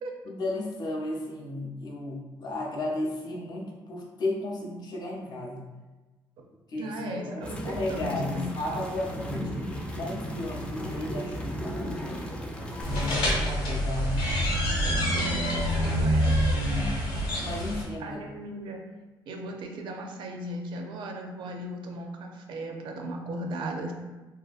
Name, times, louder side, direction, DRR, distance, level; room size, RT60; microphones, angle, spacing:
voice 1, 0.3-5.6 6.7-9.7 10.0-11.7 12.8-14.3 16.9-17.0 17.4-18.2, left 1 dB, 55° left, -2 dB, 0.6 m, -34 dB
voice 2, 6.7-8.5 15.1-16.4 18.0-18.8 19.3-23.9, right 1 dB, 70° right, 2 dB, 0.4 m, -37 dB
sound 1, 7.4-13.2, equal, 10° left, 0.4 m, -35 dB
sound 2, 12.8-17.8, equal, 80° left, 1.0 m, -26 dB
2.7 x 2.4 x 2.4 m, 1.2 s
cardioid pair, 105°, 8 cm